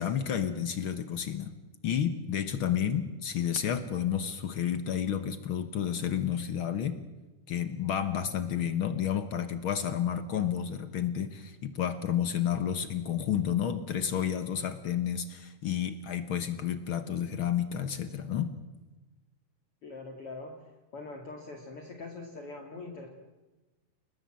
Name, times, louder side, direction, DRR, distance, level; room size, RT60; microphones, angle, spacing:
voice 1, 0.0-1.5 1.8-7.0 7.5-18.5, left 9 dB, 60° left, 10 dB, 1.3 m, -31 dB
voice 2, 8.2-8.6 19.8-20.5 20.9-23.1, left 3 dB, 45° left, 2 dB, 2.8 m, -43 dB
30.0 x 18.5 x 7.6 m, 1.1 s
omnidirectional pair, 3.9 m